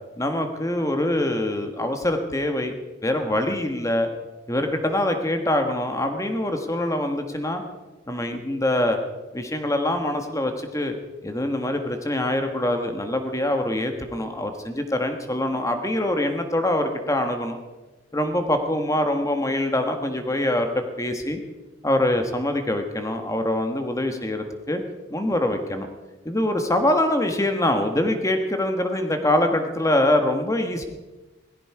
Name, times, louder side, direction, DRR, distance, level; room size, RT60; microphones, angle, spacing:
voice 1, 0.2-2.7 3.0-4.1 4.5-7.6 8.1-9.0 9.3-10.9 11.2-17.6 18.1-20.7 21.0-21.4 21.8-24.8 25.1-25.9 26.2-30.8, left 1 dB, 15° left, 6 dB, 1.4 m, -24 dB
18.0 x 15.0 x 4.9 m, 1.1 s
head